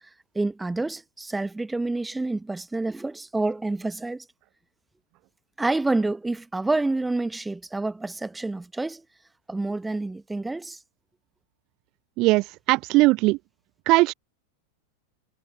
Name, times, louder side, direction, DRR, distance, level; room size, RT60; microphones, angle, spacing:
voice 1, 0.3-4.2 5.6-9.0 9.5-10.8, right 2 dB, 5° right, 1.2 m, -28 dB
voice 2, 12.2-13.4 13.9-14.1, right 21 dB, 40° right, 0.4 m, -19 dB
figure-of-eight pair, 90°, 0 cm